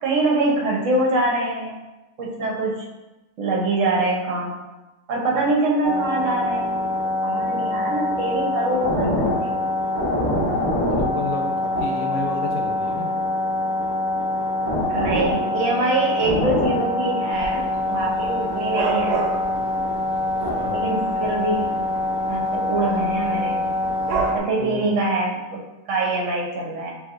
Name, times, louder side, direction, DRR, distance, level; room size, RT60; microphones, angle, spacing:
voice 1, 0.0-1.8 2.2-2.7 3.4-4.5 5.1-6.8 7.2-9.6 14.9-19.2 20.7-21.6 22.3-23.6 24.3-25.6 25.9-26.9, right 2 dB, 60° right, -2 dB, 1.1 m, -24 dB
sound 1, 5.8-24.4, left 2 dB, 35° left, 0.9 m, -24 dB
voice 2, 10.8-13.1 20.6-20.8 24.6-24.9, left 3 dB, 85° left, 2 dB, 1.2 m, -31 dB
Dog / Cat, 17.3-24.3, right 5 dB, 85° right, 1.1 m, -32 dB
4.6 x 3.0 x 2.5 m, 1.1 s
omnidirectional pair, 1.6 m